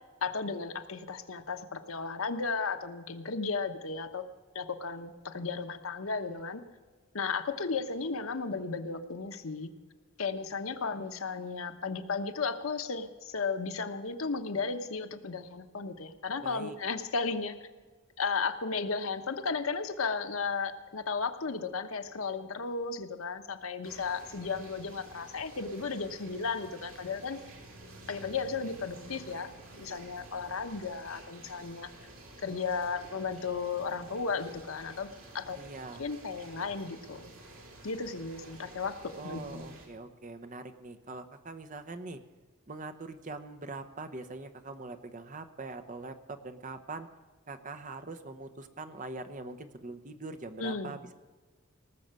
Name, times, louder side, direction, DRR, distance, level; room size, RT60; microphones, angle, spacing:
voice 1, 0.2-4.3 4.5-6.6 7.1-9.7 10.2-17.6 18.2-27.4 28.1-31.9 32.4-35.1 35.3-35.6 36.0-37.3 37.8-39.0 39.2-39.8 50.6-50.9, left 4 dB, 85° left, 8 dB, 1.0 m, -34 dB
voice 2, 16.4-16.8 35.5-36.1 39.1-42.2 42.7-47.1 47.5-51.1, right 3 dB, 40° right, 9 dB, 0.9 m, -43 dB
sound 1, 23.8-39.9, right 2 dB, 85° right, 3.5 m, -51 dB
sound 2, 27.3-32.4, right 1 dB, 45° left, 3.2 m, -56 dB
19.0 x 6.7 x 7.6 m, 1.4 s
head